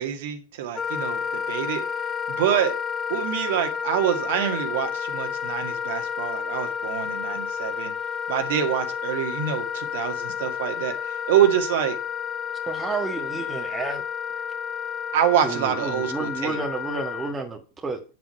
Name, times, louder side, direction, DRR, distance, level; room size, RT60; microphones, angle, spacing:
voice 1, 0.0-1.8 2.3-2.7 3.1-7.9 8.3-12.0 15.1-16.6, right 10 dB, 55° right, 1.9 m, -26 dB
Wind instrument woodwind instrument, 0.7-17.3, left 7 dB, 20° left, 0.4 m, -31 dB
voice 2, 12.7-14.0 14.4-14.5 15.4-18.0, right 3 dB, 15° right, 1.7 m, -31 dB
9.3 x 8.0 x 5.8 m
figure-of-eight pair, 90°, 0 cm